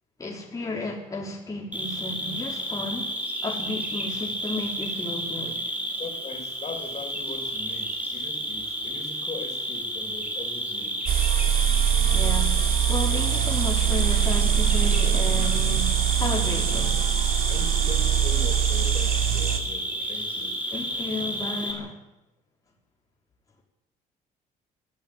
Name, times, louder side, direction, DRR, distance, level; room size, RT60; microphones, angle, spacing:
voice 1, 0.2-3.2 3.4-5.6 11.8-17.1 20.7-22.0, left 2 dB, 20° left, -2 dB, 4.6 m, -33 dB
Cricket, 1.7-21.7, equal, 10° right, 6.2 m, -31 dB
voice 2, 6.0-11.0 12.0-12.2 13.4-13.5 17.5-20.6, left 4 dB, 40° left, 4 dB, 5.5 m, -40 dB
sound 1, 11.1-19.6, right 9 dB, 60° right, 3.1 m, -23 dB
22.0 x 14.0 x 9.2 m, 0.88 s
cardioid pair, 110°, 17 cm